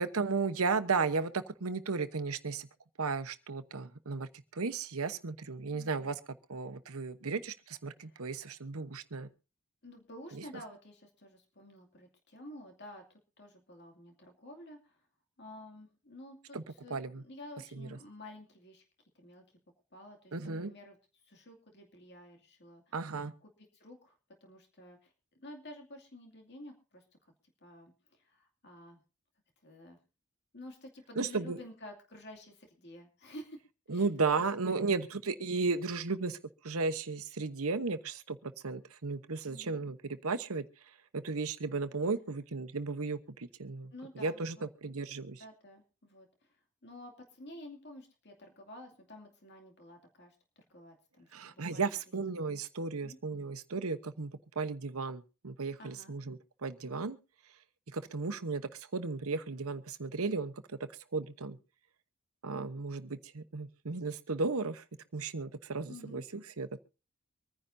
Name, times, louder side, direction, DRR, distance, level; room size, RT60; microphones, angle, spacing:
voice 1, 0.0-2.7 3.0-6.2 6.5-9.3 16.5-16.6 16.9-17.2 17.8-18.0 20.3-20.7 22.9-23.3 31.2-31.6 33.9-36.4 36.6-40.6 41.1-45.4 51.3-54.3 54.6-57.2 57.9-60.5 61.1-61.6 62.4-64.8 65.1-66.8, right 4 dB, 80° right, 1.0 m, -35 dB
voice 2, 5.7-6.1 8.0-8.5 9.8-15.1 15.4-18.8 19.1-19.4 19.9-21.0 21.2-23.1 23.4-24.2 24.4-25.1 25.4-27.3 27.6-29.0 29.6-30.0 30.5-33.6 33.9-34.1 34.4-34.8 39.5-39.8 43.9-44.7 45.4-52.0 52.9-53.2 55.8-56.2 65.9-66.2, left 1 dB, 50° left, 2.4 m, -51 dB
25.0 x 10.0 x 2.7 m
head